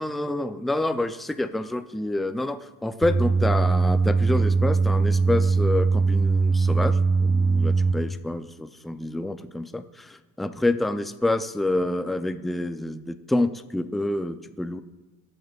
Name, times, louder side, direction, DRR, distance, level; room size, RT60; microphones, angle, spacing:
voice 1, 0.0-14.8, left 2 dB, ahead, 9 dB, 0.4 m, -28 dB
sound 1, 3.0-7.9, right 4 dB, 40° right, 1.4 m, -21 dB
22.5 x 8.9 x 2.4 m, 1.2 s
cardioid pair, 105°, 37 cm